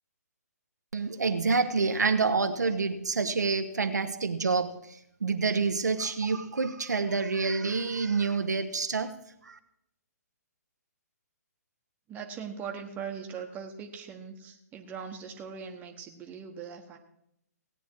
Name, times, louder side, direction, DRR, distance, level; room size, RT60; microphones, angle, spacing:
voice 1, 0.9-9.2 9.4-9.6, right 4 dB, 85° right, 1.1 m, -28 dB
voice 2, 12.1-17.0, right 6 dB, 15° right, 1.3 m, -40 dB
17.5 x 9.2 x 4.6 m
hypercardioid pair, 140°, 9 cm